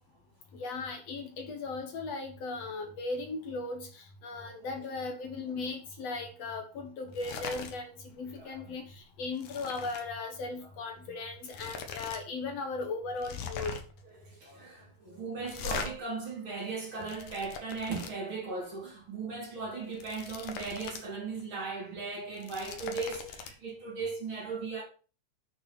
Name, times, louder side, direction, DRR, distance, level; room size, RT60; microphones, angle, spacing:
voice 1, 0.5-13.8, left 3 dB, 60° left, 2.4 m, -37 dB
voice 2, 2.6-2.9 4.3-4.7 8.2-8.7 14.0-24.8, right 4 dB, 40° right, 4.2 m, -38 dB
sound 1, 7.1-7.8 8.1-8.4 8.7-10.1 11.0-11.1 11.4-12.2 12.5-12.6 13.2-14.0 15.4-15.9 16.7-18.1 19.8-21.1 21.4-21.5 22.2-23.5, left 5 dB, 80° left, 2.9 m, -40 dB
8.8 x 6.7 x 6.0 m
omnidirectional pair, 3.5 m